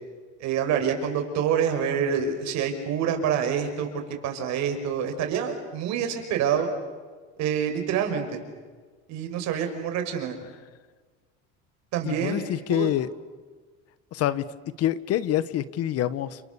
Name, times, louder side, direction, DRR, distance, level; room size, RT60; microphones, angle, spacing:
voice 1, 0.4-6.7 7.4-8.4 9.1-10.4 11.9-12.9, right 8 dB, 60° right, 6 dB, 5.8 m, -27 dB
voice 2, 12.0-13.1 14.1-14.4 14.8-16.4, left 12 dB, 50° left, 16 dB, 1.3 m, -26 dB
29.5 x 27.5 x 7.0 m, 1.4 s
cardioid pair, 125°, 31 cm